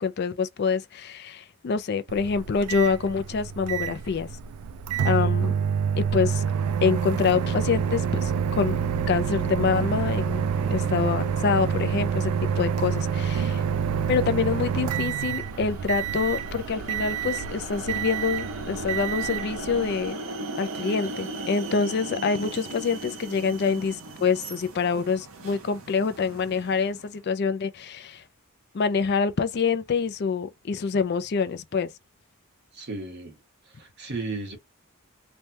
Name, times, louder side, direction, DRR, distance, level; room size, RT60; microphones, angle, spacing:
voice 1, 0.0-4.3 5.0-5.5 6.0-6.5 6.8-8.8 9.1-10.4 10.7-13.6 14.1-20.2 20.6-28.2 28.7-31.9, left 5 dB, 45° left, 0.4 m, -26 dB
Microwave oven, 2.1-20.1, right 7 dB, 90° right, 0.4 m, -27 dB
sound 1, 9.7-27.2, right 2 dB, 65° right, 0.8 m, -39 dB
voice 2, 10.6-11.1 32.7-33.4 33.7-34.6, right 3 dB, 50° right, 1.4 m, -35 dB
3.2 x 2.2 x 2.7 m
head